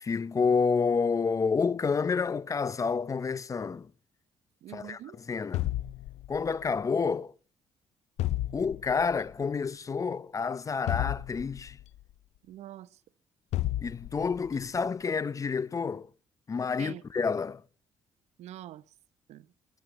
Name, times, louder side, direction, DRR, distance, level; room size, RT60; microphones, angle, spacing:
voice 1, 0.0-3.9 4.7-5.0 5.3-5.7 6.3-7.3 8.5-11.8 13.8-16.1 16.5-17.6, left 5 dB, 30° left, 0.6 m, -29 dB
voice 2, 4.6-5.2 12.4-13.0 16.8-17.0 18.4-18.9 19.3-19.5, right 13 dB, 80° right, 0.8 m, -45 dB
sound 1, 5.5-6.7 8.2-9.1 10.9-12.0 13.5-14.5, left 15 dB, 85° left, 0.6 m, -32 dB
21.0 x 9.3 x 4.2 m
cardioid pair, 100°, 11 cm